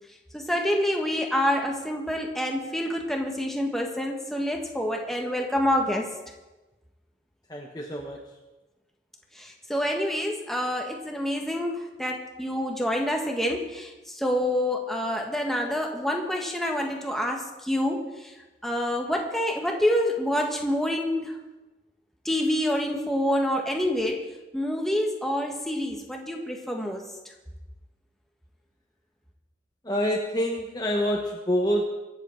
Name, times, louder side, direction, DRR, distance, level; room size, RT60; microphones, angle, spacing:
voice 1, 0.3-6.1 9.4-18.0 18.6-21.3 22.2-24.3 24.5-27.0, equal, ahead, 1 dB, 1.5 m, -27 dB
voice 2, 7.5-8.3 29.8-31.8, equal, 20° left, 1 dB, 1.1 m, -27 dB
23.5 x 8.0 x 4.5 m, 1.1 s
head